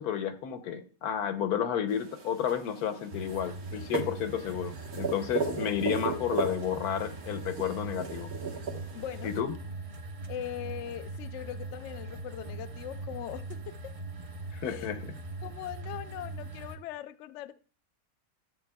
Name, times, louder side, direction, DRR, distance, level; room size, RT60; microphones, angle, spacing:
voice 1, 0.0-8.3 9.2-9.5 14.5-15.2, left 9 dB, 85° left, 1.3 m, -31 dB
sound 1, 1.9-9.4, right 5 dB, 80° right, 1.8 m, -37 dB
sound 2, 3.1-16.8, right 3 dB, 40° right, 0.5 m, -41 dB
voice 2, 8.9-9.3 10.3-13.9 14.7-15.0 15.4-17.5, left 11 dB, 65° left, 0.7 m, -40 dB
13.0 x 7.7 x 2.2 m
omnidirectional pair, 1.6 m